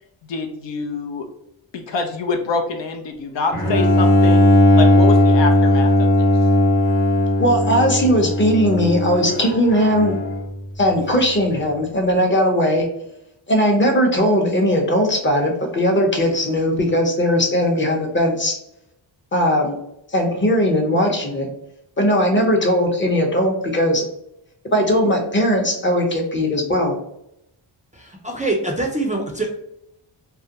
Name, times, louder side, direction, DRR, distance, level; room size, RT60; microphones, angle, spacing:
voice 1, 0.3-1.3 1.7-4.5 4.8-5.9 6.2-6.3, left 4 dB, 60° left, 4 dB, 0.5 m, -25 dB
Bowed string instrument, 3.5-10.5, left 1 dB, 75° left, 1.1 m, -17 dB
voice 2, 7.4-10.2 10.8-12.9 13.5-18.5 19.3-19.8 20.1-21.5 22.0-24.0 24.7-27.0, equal, 25° left, 2 dB, 0.7 m, -18 dB
voice 3, 27.9-29.5, right 2 dB, 15° right, 0 dB, 0.4 m, -24 dB
2.4 x 2.1 x 2.7 m, 0.80 s
cardioid pair, 50°, 50 cm